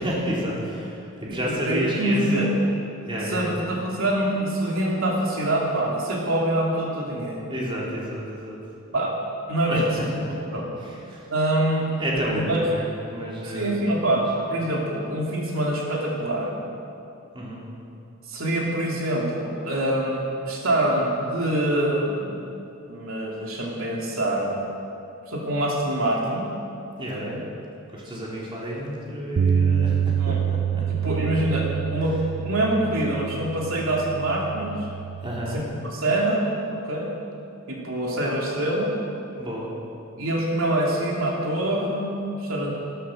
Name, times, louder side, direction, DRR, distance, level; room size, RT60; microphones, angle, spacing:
voice 1, 0.0-2.2 3.1-3.6 7.5-8.6 9.7-10.4 10.8-11.3 12.0-13.8 14.1-14.2 17.3-17.7 27.0-27.4 27.9-31.1 32.0-32.1 35.2-35.6 39.4-39.7, equal, 25° right, -5 dB, 3.2 m, -30 dB
voice 2, 1.2-2.5 3.3-7.4 8.9-9.2 9.5-9.8 10.5-10.7 11.3-11.9 12.3-12.6 13.4-16.6 18.3-22.4 22.9-24.6 25.3-26.5 26.9-27.4 30.2-30.4 30.9-34.9 35.5-37.1 37.7-38.9 40.2-42.7, right 1 dB, 80° right, -2 dB, 2.8 m, -25 dB
Bass guitar, 29.4-35.6, right 8 dB, 55° right, 0.4 m, -26 dB
15.5 x 13.0 x 6.4 m, 2.6 s
head